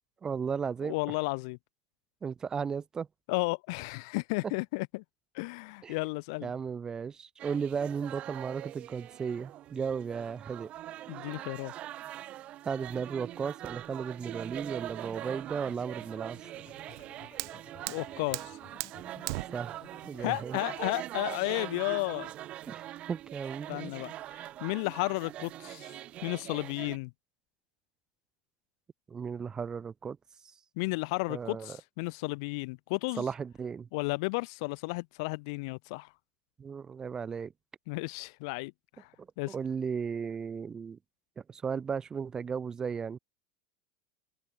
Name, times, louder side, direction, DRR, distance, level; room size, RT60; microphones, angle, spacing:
voice 1, 0.2-0.9 2.2-3.1 5.8-6.0 6.4-10.7 12.6-16.4 19.5-20.6 22.7-23.9 29.1-30.2 31.3-31.8 33.2-33.9 36.6-37.5 39.5-41.0 41.5-43.2, right 6 dB, 25° right, 0.9 m, -35 dB
voice 2, 0.8-1.6 3.3-5.0 5.3-6.5 11.1-11.7 17.9-18.6 20.2-22.3 23.7-27.1 30.8-33.2 33.9-36.1 37.9-38.7 39.0-39.1 39.4-39.5, left 28 dB, 70° left, 1.2 m, -33 dB
sound 1, 7.4-27.0, right 13 dB, 45° right, 1.3 m, -43 dB
sound 2, 15.7-20.9, left 13 dB, 40° left, 3.0 m, -57 dB
Fire, 16.8-22.7, right 26 dB, 70° right, 2.7 m, -42 dB
supercardioid pair, 115°, 3 cm